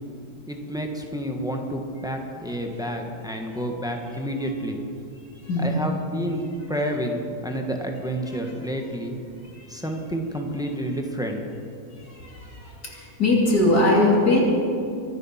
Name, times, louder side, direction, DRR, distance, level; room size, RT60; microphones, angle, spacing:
voice 1, 0.5-4.8 5.6-6.4 6.7-9.1 9.7-11.4, equal, ahead, 3 dB, 1.2 m, -29 dB
voice 2, 5.4-5.7 8.2-8.4 9.4-9.8 12.0-14.4, left 2 dB, 55° left, -3 dB, 3.2 m, -22 dB
24.0 x 9.1 x 5.8 m, 2.5 s
omnidirectional pair, 1.9 m